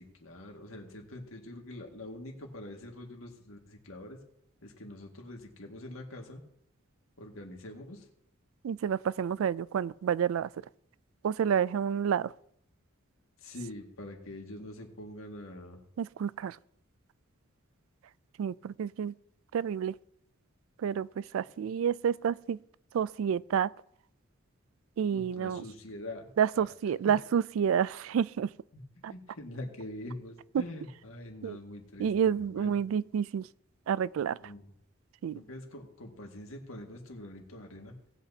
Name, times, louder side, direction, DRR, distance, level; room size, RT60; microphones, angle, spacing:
voice 1, 0.0-4.2 4.6-6.4 7.2-8.1 13.4-15.8 25.1-26.3 26.5-26.7 27.0-27.1 29.1-32.8 34.4-34.7 35.3-37.9, left 1 dB, 85° left, 1.9 m, -44 dB
voice 2, 8.6-10.5 11.2-12.3 16.0-16.6 18.4-19.1 19.5-19.9 20.8-22.6 22.9-23.7 25.0-25.6 26.4-28.5 29.0-29.1 31.4-31.6 32.0-33.5 33.9-34.4 35.2-35.4, right 8 dB, 75° right, 0.3 m, -29 dB
18.5 x 8.3 x 2.8 m
head